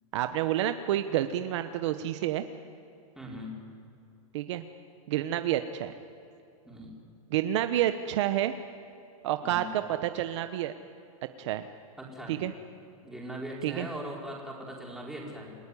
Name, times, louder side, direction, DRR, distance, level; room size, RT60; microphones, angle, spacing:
voice 1, 0.1-2.4 4.3-4.6 5.1-5.9 7.3-8.5 9.2-10.7 11.4-11.6 12.3-12.5 13.6-13.9, right 12 dB, 50° right, 9 dB, 1.1 m, -29 dB
voice 2, 3.1-3.6 6.6-6.9 9.4-9.7 12.0-12.5 13.0-15.6, equal, ahead, -3 dB, 4.7 m, -40 dB
28.5 x 16.0 x 10.0 m, 2.6 s
hypercardioid pair, 155°, 19 cm